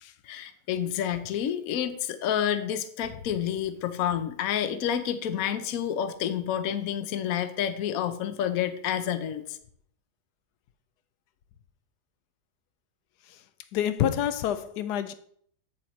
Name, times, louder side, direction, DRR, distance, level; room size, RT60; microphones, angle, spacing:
voice 1, 0.2-9.6, left 9 dB, 65° left, 1.1 m, -29 dB
voice 2, 13.7-15.1, left 10 dB, 85° left, 1.2 m, -27 dB
8.5 x 7.7 x 3.1 m
omnidirectional pair, 1.7 m